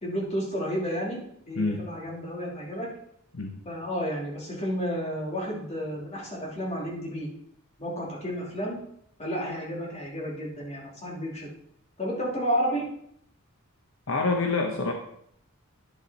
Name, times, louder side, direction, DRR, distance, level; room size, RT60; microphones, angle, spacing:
voice 1, 0.0-2.9 3.7-7.3 7.8-8.8 9.2-11.5 12.0-12.9, equal, 30° left, -3 dB, 2.7 m, -31 dB
voice 2, 1.6-1.9 3.3-3.6 14.1-14.9, left 3 dB, 65° left, 2 dB, 1.0 m, -26 dB
9.9 x 7.0 x 4.1 m, 0.69 s
head